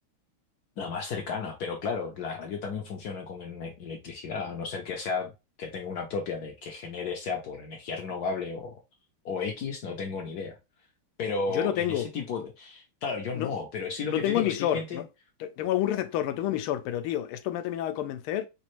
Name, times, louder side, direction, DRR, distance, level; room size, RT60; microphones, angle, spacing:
voice 1, 0.8-5.3 5.6-8.8 9.2-10.6 11.2-15.0, left 5 dB, 70° left, 0.9 m, -33 dB
voice 2, 11.5-12.0 13.3-13.5 14.1-15.0 15.4-18.5, left 12 dB, 90° left, 1.5 m, -29 dB
5.2 x 2.5 x 3.0 m
omnidirectional pair, 2.3 m